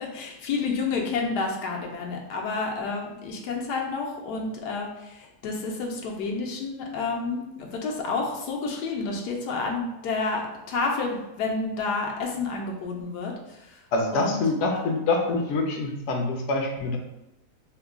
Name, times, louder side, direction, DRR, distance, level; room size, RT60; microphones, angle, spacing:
voice 1, 0.0-13.8 14.1-14.4 14.7-14.9, left 4 dB, 90° left, 0 dB, 1.2 m, -30 dB
voice 2, 13.9-17.0, left 2 dB, 65° left, 2 dB, 0.7 m, -25 dB
3.2 x 2.2 x 3.5 m, 0.91 s
omnidirectional pair, 1.7 m